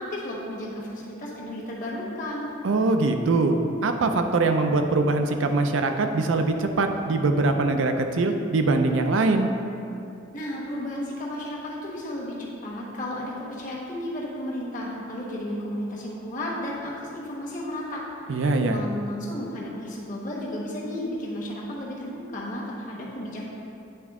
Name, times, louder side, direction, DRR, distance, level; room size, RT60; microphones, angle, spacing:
voice 1, 0.0-2.5 10.3-18.0 18.3-23.5, left 1 dB, 45° left, -4 dB, 1.2 m, -33 dB
voice 2, 2.6-9.5 18.3-18.9, right 3 dB, 85° right, 6 dB, 0.5 m, -22 dB
9.2 x 3.6 x 3.6 m, 2.6 s
head